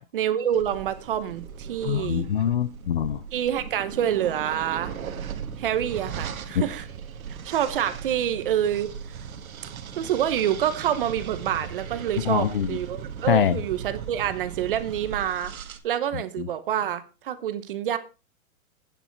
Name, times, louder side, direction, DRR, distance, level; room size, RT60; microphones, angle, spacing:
voice 1, 0.1-2.3 3.3-5.0 5.6-6.9 7.4-8.9 10.0-15.5 15.8-18.0, right 10 dB, 40° right, 1.0 m, -27 dB
sound 1, 0.5-15.8, right 7 dB, 70° right, 1.7 m, -38 dB
voice 2, 1.8-3.2 12.3-12.7 13.3-13.6, left 9 dB, 40° left, 0.6 m, -23 dB
10.5 x 9.2 x 4.5 m
hypercardioid pair, 170°, 43 cm